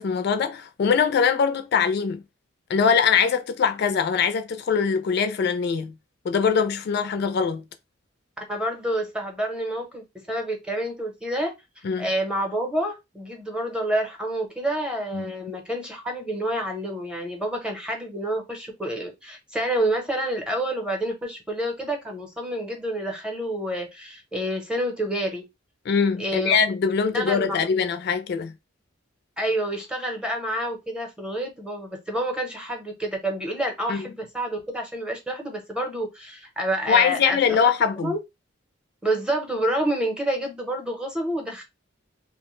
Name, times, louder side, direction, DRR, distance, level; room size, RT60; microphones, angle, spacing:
voice 1, 0.0-2.2 2.7-5.9 6.3-7.6 11.8-12.1 15.1-15.3 25.9-28.5 33.9-34.0 36.9-38.1, left 6 dB, 55° left, 0.3 m, -22 dB
voice 2, 8.5-11.5 12.0-25.4 26.2-26.6 27.1-27.6 29.4-37.6 38.0-38.2 39.0-41.6, right 1 dB, 5° right, 0.7 m, -28 dB
2.6 x 2.1 x 3.0 m
head